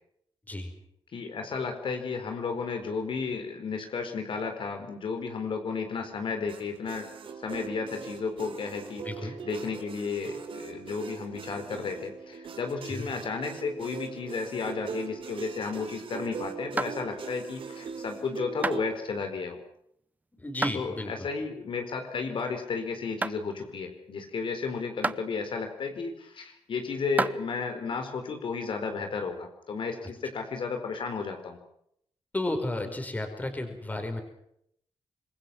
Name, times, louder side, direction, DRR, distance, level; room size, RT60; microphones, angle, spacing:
voice 1, 1.1-7.1 7.4-19.6 20.7-31.6, left 5 dB, 65° left, 5 dB, 4.5 m, -33 dB
sound 1, 6.5-19.0, right 6 dB, 75° right, 4.0 m, -41 dB
voice 2, 9.0-9.4 12.9-13.1 20.3-21.3 32.3-34.2, left 1 dB, 15° left, 6 dB, 5.1 m, -33 dB
sound 2, 16.8-17.3 17.9-18.1 18.6-18.9 19.5-20.0 20.6-20.8 21.3-21.4 22.1-22.2 22.7-22.8 23.2-23.5 24.1-24.2 25.0-25.2 26.1-26.2 27.0-27.4, right 2 dB, 20° right, 0.9 m, -31 dB
26.5 x 22.0 x 6.3 m, 0.72 s
wide cardioid pair, 130°, 9 cm